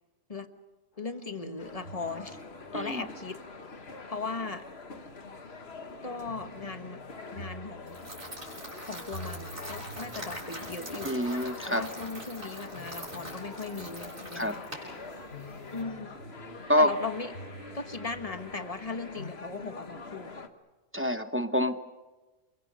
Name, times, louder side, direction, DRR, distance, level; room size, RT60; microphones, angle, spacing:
sound 1, 0.9-19.3, equal, 70° left, 6.2 m, -50 dB
voice 1, 1.0-2.4 2.7-3.4 4.1-4.6 6.0-7.0 7.3-8.1 8.8-11.2 11.6-14.6 15.7-16.1 16.8-17.3 17.7-20.3, left 4 dB, 30° left, 8 dB, 1.4 m, -38 dB
sound 2, 1.6-20.5, left 4 dB, 50° left, 1.6 m, -45 dB
voice 2, 2.7-3.0 11.0-11.9 14.3-14.6 16.7-16.9 20.9-21.8, left 1 dB, 10° right, 9 dB, 0.8 m, -26 dB
sound 3, 7.9-15.8, right 1 dB, 55° right, 6.8 m, -44 dB
29.0 x 23.0 x 6.8 m, 1.2 s
omnidirectional pair, 1.4 m